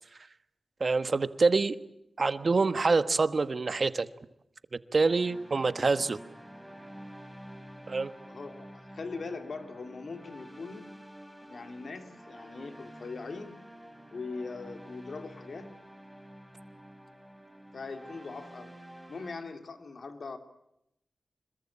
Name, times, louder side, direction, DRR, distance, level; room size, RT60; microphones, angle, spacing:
voice 1, 0.8-1.8 2.2-4.1 4.9-6.2 7.9-8.1, right 3 dB, 55° right, 12 dB, 1.3 m, -26 dB
sound 1, 5.0-19.4, equal, ahead, 4.5 m, -49 dB
voice 2, 8.3-10.9 11.5-13.6 14.1-15.7 17.7-18.8 19.1-20.4, left 4 dB, 70° left, 7 dB, 3.1 m, -41 dB
26.5 x 22.0 x 8.8 m, 0.80 s
cardioid pair, 60°, 0 cm